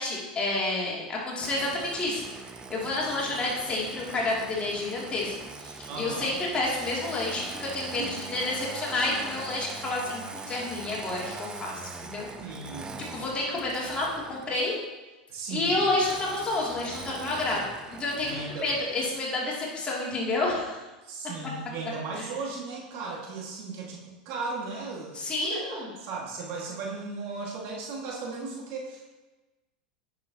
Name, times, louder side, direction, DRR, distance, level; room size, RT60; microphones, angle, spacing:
voice 1, 0.0-2.2 2.7-5.3 5.6-12.3 13.0-14.7 15.5-17.6 18.0-20.8 22.2-22.3 25.1-25.9, left 2 dB, 25° left, -5 dB, 2.6 m, -29 dB
Engine starting, 1.4-14.8 16.0-19.2, right 4 dB, 20° right, 0.5 m, -42 dB
voice 2, 5.9-6.4 8.0-8.1 12.4-13.0 15.3-15.9 18.2-18.7 21.0-29.1, right 4 dB, 55° right, -2 dB, 1.9 m, -36 dB
9.5 x 6.2 x 2.9 m, 1.1 s
hypercardioid pair, 100°, 4 cm